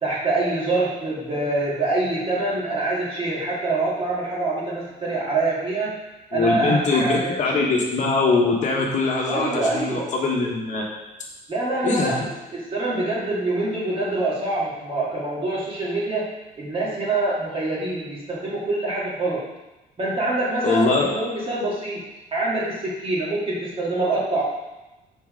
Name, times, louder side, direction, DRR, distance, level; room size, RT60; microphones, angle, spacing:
voice 1, 0.0-6.0 6.3-7.6 9.3-10.1 11.5-12.2 12.5-16.3 16.6-19.4 20.0-22.0 22.3-24.4, right 2 dB, 35° right, -6 dB, 2.4 m, -25 dB
voice 2, 6.3-10.8 11.8-12.2 20.6-21.1, left 3 dB, 45° left, -1 dB, 1.4 m, -22 dB
5.8 x 4.6 x 5.2 m, 1.0 s
cardioid pair, 110°, 17 cm